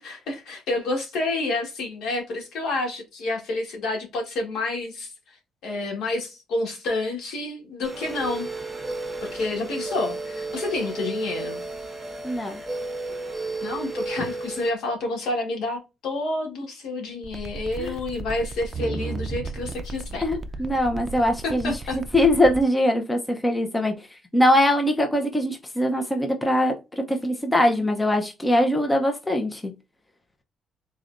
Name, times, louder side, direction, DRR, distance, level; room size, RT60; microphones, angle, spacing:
voice 1, 0.0-5.1 5.6-8.5 9.3-11.6 13.6-20.3 21.4-22.0, left 2 dB, 80° left, 1.7 m, -29 dB
sound 1, 7.8-14.7, right 3 dB, 10° right, 1.5 m, -33 dB
voice 2, 12.2-12.6 17.8-17.9 20.2-23.9 24.3-26.7 27.1-29.6, left 1 dB, 15° left, 0.7 m, -22 dB
sound 2, 17.2-22.6, right 3 dB, 30° right, 0.5 m, -34 dB
3.9 x 3.2 x 2.6 m
cardioid pair, 115°, 0 cm